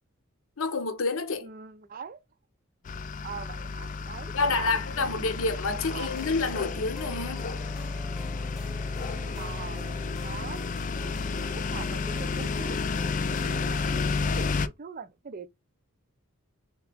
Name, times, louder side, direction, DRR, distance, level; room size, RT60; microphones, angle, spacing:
voice 1, 0.6-1.5 4.3-7.5, left 3 dB, 65° left, 0.7 m, -28 dB
voice 2, 1.4-2.2 3.2-5.2 5.9-6.1 9.4-9.9 10.2-10.6 11.0-12.8 13.3-15.5, right 6 dB, 40° right, 0.4 m, -43 dB
sound 1, 2.9-14.7, left 4 dB, 35° left, 0.3 m, -31 dB
sound 2, 5.9-14.5, left 1 dB, ahead, 1.0 m, -47 dB
3.4 x 2.9 x 3.4 m
head